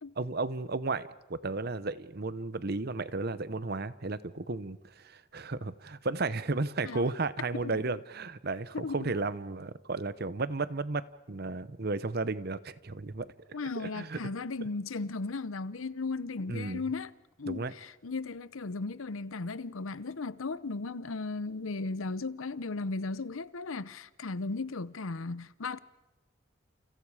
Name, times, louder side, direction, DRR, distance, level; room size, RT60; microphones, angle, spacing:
voice 1, 0.2-13.3 13.8-14.2 16.5-16.8 17.4-17.7, right 3 dB, 50° right, 0.9 m, -34 dB
voice 2, 8.7-9.1 13.5-17.1 17.4-25.8, left 3 dB, 85° left, 0.8 m, -36 dB
29.5 x 29.0 x 4.9 m
head